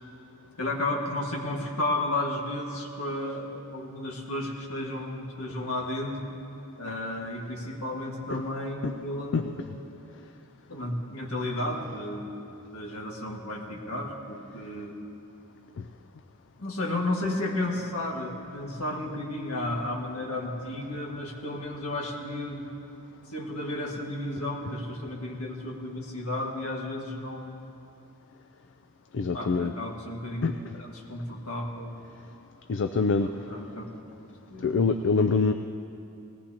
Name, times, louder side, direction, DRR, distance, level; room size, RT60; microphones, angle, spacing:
voice 1, 0.6-6.3 6.8-9.7 10.7-12.4 12.7-15.0 16.6-22.7 23.3-27.6 29.3-32.0 33.2-34.1 34.5-34.8, left 1 dB, 75° left, 0 dB, 1.9 m, -33 dB
voice 2, 29.1-29.7 30.4-30.6 32.7-33.3 34.6-35.5, left 4 dB, 55° left, 7 dB, 0.4 m, -25 dB
19.5 x 17.5 x 2.9 m, 2.8 s
head